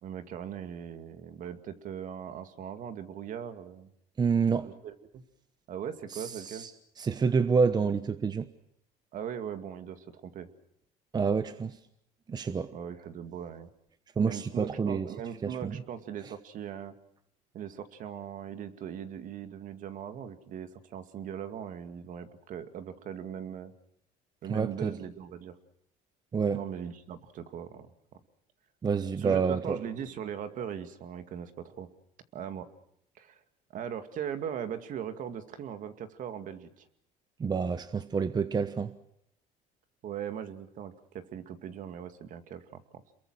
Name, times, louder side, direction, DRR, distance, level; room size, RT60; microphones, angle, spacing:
voice 1, 0.0-3.9 4.8-5.2 5.7-6.7 9.1-10.5 12.7-13.7 14.2-16.9 17.5-23.7 24.4-25.6 26.5-27.9 29.2-31.9 32.3-32.7 33.2-33.4 33.7-36.8 40.0-43.0, right 8 dB, 55° right, 2.2 m, -39 dB
voice 2, 4.2-4.7 6.1-6.7 7.0-8.5 11.1-11.8 12.3-12.7 14.2-15.1 15.4-15.8 24.5-24.9 26.3-26.6 28.8-29.8 37.4-38.9, right 5 dB, 25° right, 1.0 m, -28 dB
28.0 x 22.5 x 6.2 m
cardioid pair, 115°, 17 cm